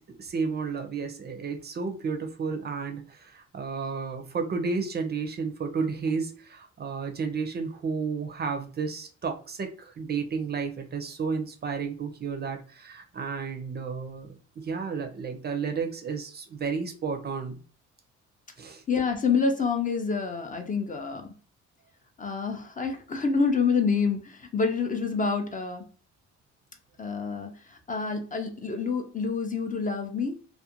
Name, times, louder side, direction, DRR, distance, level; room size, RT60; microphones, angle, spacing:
voice 1, 0.0-17.6 18.6-18.8, right 5 dB, 35° right, 5 dB, 0.5 m, -32 dB
voice 2, 18.9-21.3 22.2-25.8 27.0-30.3, left 5 dB, 25° left, 4 dB, 0.4 m, -27 dB
2.4 x 2.2 x 2.8 m, 0.38 s
cardioid pair, 90°, 30 cm